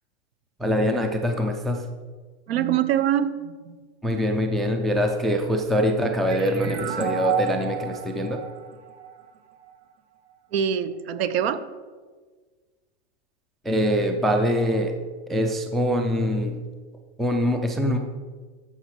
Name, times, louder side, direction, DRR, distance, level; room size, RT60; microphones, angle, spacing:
voice 1, 0.6-1.8 4.0-8.4 13.6-15.0 15.3-16.6 17.2-18.0, equal, ahead, 4 dB, 0.3 m, -23 dB
voice 2, 2.5-3.8 6.6-6.8 10.5-11.7, right 9 dB, 65° right, 13 dB, 0.9 m, -24 dB
sound 1, 6.3-9.7, right 9 dB, 90° right, 1.3 m, -31 dB
13.5 x 5.7 x 4.8 m, 1.5 s
supercardioid pair, 140°, 34 cm